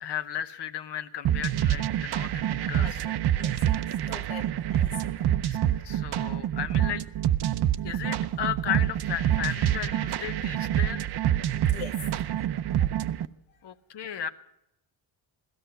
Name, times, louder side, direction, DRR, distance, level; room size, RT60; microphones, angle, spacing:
voice 1, 0.0-3.0 5.4-5.6 5.8-7.1 7.8-11.1 13.6-14.3, left 10 dB, 60° left, 9 dB, 1.0 m, -34 dB
sound 1, 1.2-13.3, right 11 dB, 55° right, 0.7 m, -27 dB
voice 2, 3.3-5.4 5.9-6.1 11.7-12.1 13.5-13.6, left 6 dB, 80° left, 2 dB, 1.8 m, -43 dB
16.5 x 13.5 x 5.7 m, 0.82 s
cardioid pair, 75°, 48 cm